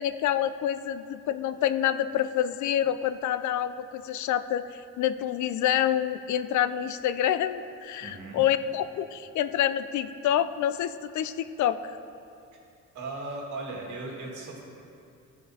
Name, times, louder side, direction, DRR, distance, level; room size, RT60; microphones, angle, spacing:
voice 1, 0.0-11.8, left 10 dB, 70° left, 12 dB, 0.5 m, -27 dB
voice 2, 8.0-8.4 12.9-14.6, right 2 dB, 75° right, -1 dB, 1.9 m, -37 dB
14.5 x 5.3 x 4.2 m, 2.6 s
cardioid pair, 90°, 30 cm